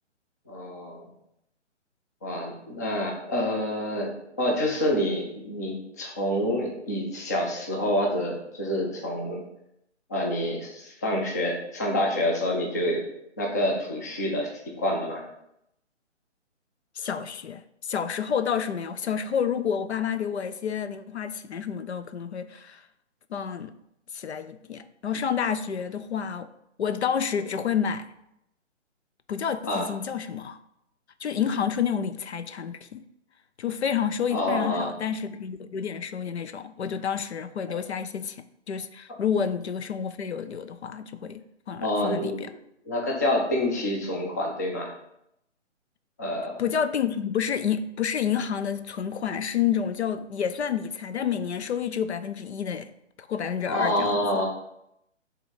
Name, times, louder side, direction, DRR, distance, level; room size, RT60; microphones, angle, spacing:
voice 1, 0.5-1.1 2.2-4.1 4.4-9.4 10.1-13.1 13.4-14.5 14.8-15.2 29.7-29.9 34.3-34.9 41.8-42.5 42.9-44.9 46.2-46.6 53.7-54.5, left 1 dB, 15° left, -1 dB, 0.5 m, -27 dB
voice 2, 17.0-22.8 23.3-23.7 24.1-26.5 26.8-28.1 29.3-30.6 31.2-33.0 33.6-42.5 46.6-52.9 53.2-54.4, left 7 dB, 65° left, 11 dB, 0.5 m, -29 dB
5.6 x 3.6 x 5.5 m, 0.79 s
figure-of-eight pair, 145°, 37 cm